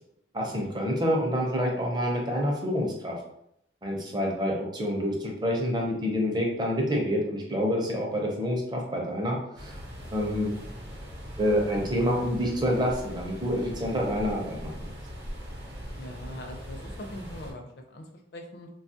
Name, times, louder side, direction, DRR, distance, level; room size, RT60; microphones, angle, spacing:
voice 1, 0.3-3.2 3.8-9.8 10.1-10.5 11.4-14.7, equal, 20° right, 0 dB, 0.5 m, -27 dB
sound 1, 9.6-17.5, equal, 60° right, 0.7 m, -40 dB
voice 2, 16.0-18.7, left 1 dB, 55° left, 3 dB, 0.4 m, -42 dB
3.0 x 2.3 x 2.6 m, 0.77 s
head